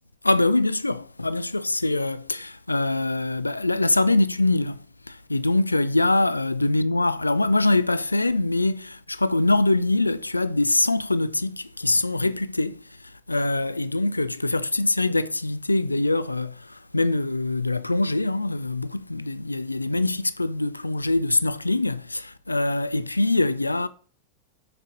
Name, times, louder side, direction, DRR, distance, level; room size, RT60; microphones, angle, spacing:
voice 1, 0.2-23.9, left 2 dB, 85° left, 0.3 m, -24 dB
7.6 x 5.1 x 6.5 m
figure-of-eight pair, 90°, 0 cm